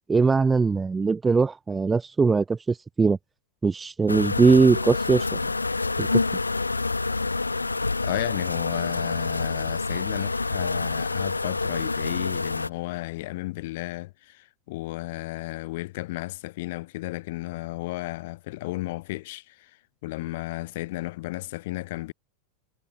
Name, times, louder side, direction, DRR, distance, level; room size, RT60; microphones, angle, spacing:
voice 1, 0.1-3.2 3.6-5.4 6.0-6.2, right 4 dB, 15° right, 0.5 m, -21 dB
sound 1, 4.1-12.7, left 3 dB, 80° left, 0.6 m, -27 dB
voice 2, 8.0-22.1, left 19 dB, 50° left, 2.2 m, -33 dB
figure-of-eight pair, 90°, 0 cm